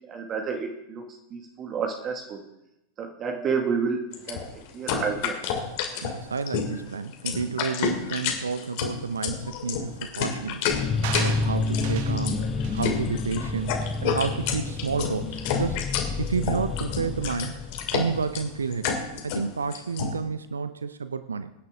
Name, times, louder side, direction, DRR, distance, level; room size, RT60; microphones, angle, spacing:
voice 1, 0.1-2.4 3.0-4.4 4.7-5.4, right 5 dB, 30° right, 3 dB, 1.9 m, -30 dB
sound 1, 4.1-20.1, left 7 dB, 50° left, 2.6 m, -30 dB
voice 2, 6.0-10.7 11.2-13.7 14.0-15.9 16.2-17.6 17.9-21.5, right 5 dB, 75° right, 13 dB, 0.6 m, -30 dB
sound 2, 10.7-18.8, left 3 dB, 20° left, 1.1 m, -30 dB
sound 3, 11.0-12.3 12.6-12.9 13.5-13.6, right 8 dB, 50° right, 1.4 m, -36 dB
22.5 x 10.5 x 3.7 m, 0.87 s
figure-of-eight pair, 90°, 0 cm